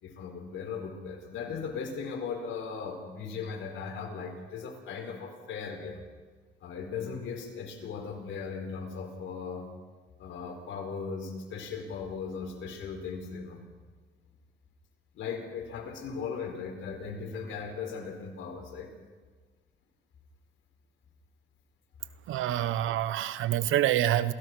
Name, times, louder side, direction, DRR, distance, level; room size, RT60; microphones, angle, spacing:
voice 1, 0.0-6.0 6.6-9.7 10.2-13.6 15.1-18.9, left 5 dB, 75° left, 3 dB, 4.7 m, -38 dB
voice 2, 22.3-24.3, right 12 dB, 85° right, 14 dB, 1.0 m, -27 dB
28.0 x 15.5 x 6.2 m, 1.5 s
cardioid pair, 90°, 20 cm